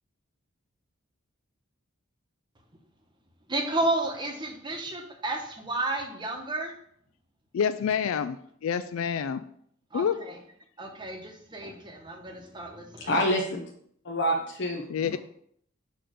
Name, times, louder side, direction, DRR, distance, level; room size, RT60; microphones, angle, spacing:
voice 1, 3.5-6.7 9.9-10.4 10.8-13.1, right 2 dB, 20° right, 2 dB, 1.0 m, -32 dB
voice 2, 7.5-8.4 8.6-9.4 9.9-10.2 14.9-15.2, left 7 dB, 75° left, 11 dB, 0.3 m, -27 dB
voice 3, 13.1-13.6 14.0-15.2, equal, 55° left, 0 dB, 0.8 m, -27 dB
6.6 x 3.8 x 5.1 m, 0.66 s
head